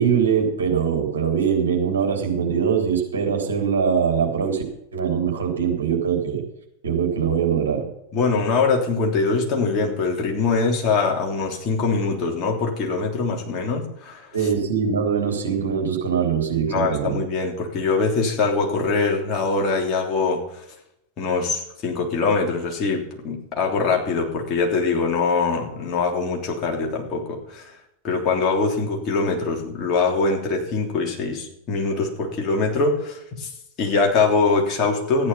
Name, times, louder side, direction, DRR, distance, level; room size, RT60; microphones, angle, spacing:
voice 1, 0.0-4.6 4.9-6.4 6.8-7.8 14.3-17.2, right 7 dB, 65° right, 1 dB, 3.6 m, -22 dB
voice 2, 8.1-14.3 16.7-20.6 21.2-27.7 28.0-33.5 33.8-35.3, left 4 dB, 35° left, 0 dB, 3.4 m, -23 dB
14.0 x 9.7 x 5.6 m, 0.82 s
figure-of-eight pair, 90°, 0 cm